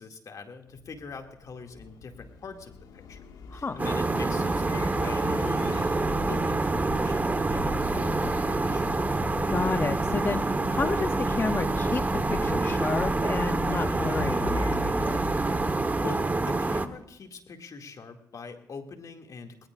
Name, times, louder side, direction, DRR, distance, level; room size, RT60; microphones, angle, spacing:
voice 1, 0.0-3.2 3.5-8.9 16.0-19.7, left 5 dB, 60° left, 5 dB, 2.2 m, -43 dB
sound 1, 0.7-16.7, left 4 dB, 85° left, 1.7 m, -39 dB
sound 2, 3.8-16.9, right 3 dB, 25° right, 1.1 m, -27 dB
voice 2, 9.5-12.0 12.3-15.2, left 4 dB, 35° left, 10 dB, 0.6 m, -31 dB
20.0 x 19.5 x 2.5 m, 0.81 s
cardioid pair, 75°, 7 cm